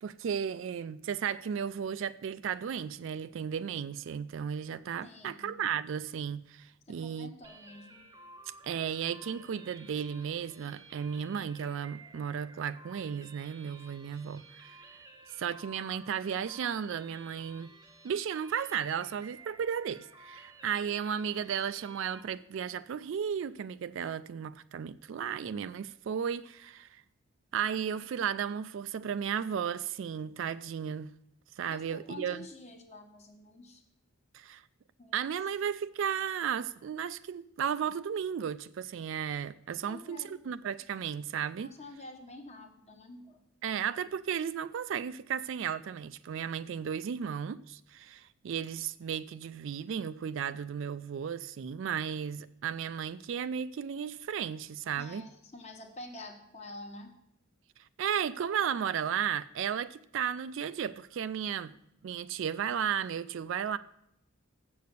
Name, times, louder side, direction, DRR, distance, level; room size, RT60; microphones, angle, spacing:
voice 1, 0.0-7.3 8.6-15.0 15.4-17.7 18.0-27.0 27.5-31.1 31.6-32.5 34.3-34.6 35.1-41.7 43.6-55.3 57.8-61.8 62.0-63.8, right 8 dB, 60° right, 0.3 m, -34 dB
voice 2, 5.0-5.5 6.9-8.0 31.7-33.8 35.0-35.2 39.8-40.4 41.6-43.4 55.0-57.2, left 2 dB, 30° left, 1.1 m, -48 dB
sound 1, 7.4-22.2, right 3 dB, 15° right, 0.7 m, -54 dB
7.9 x 6.6 x 6.6 m
head